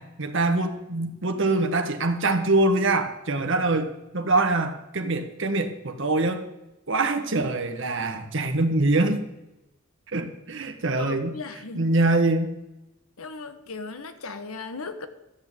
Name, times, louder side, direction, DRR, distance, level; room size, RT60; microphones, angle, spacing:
voice 1, 0.0-6.4 6.9-9.2 10.1-11.3 11.7-12.6, right 2 dB, 60° right, 6 dB, 1.3 m, -24 dB
voice 2, 11.0-11.9 13.2-15.1, left 3 dB, 80° left, 10 dB, 1.1 m, -36 dB
13.0 x 6.3 x 8.9 m, 0.95 s
head